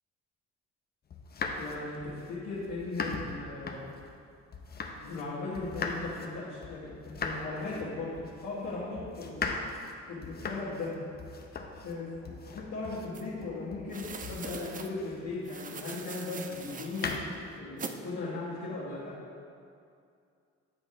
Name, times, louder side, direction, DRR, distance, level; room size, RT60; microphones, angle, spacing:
sound 1, 1.1-5.3 5.5-15.5 16.5-17.6, left 4 dB, 35° left, 0.6 m, -39 dB
voice 1, 1.6-3.8 5.0-9.5 10.1-10.9 11.8-17.2 17.6-19.2, left 3 dB, 75° left, -11 dB, 1.5 m, -37 dB
sound 2, 13.1-13.2 13.9-14.9 15.4-17.2 17.8-18.0, right 5 dB, 30° right, 0.4 m, -42 dB
10.5 x 3.7 x 3.2 m, 2.4 s
cardioid pair, 90°, 30 cm